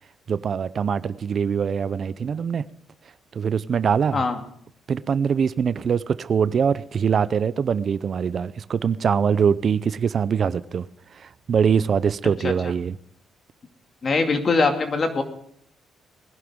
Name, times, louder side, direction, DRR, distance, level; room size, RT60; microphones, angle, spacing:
voice 1, 0.3-2.6 3.3-4.2 4.9-10.9 11.1-13.0, right 7 dB, 50° right, 0.5 m, -23 dB
voice 2, 14.0-15.2, left 4 dB, 40° left, 2.3 m, -22 dB
20.5 x 11.0 x 3.7 m
cardioid pair, 90°, 0 cm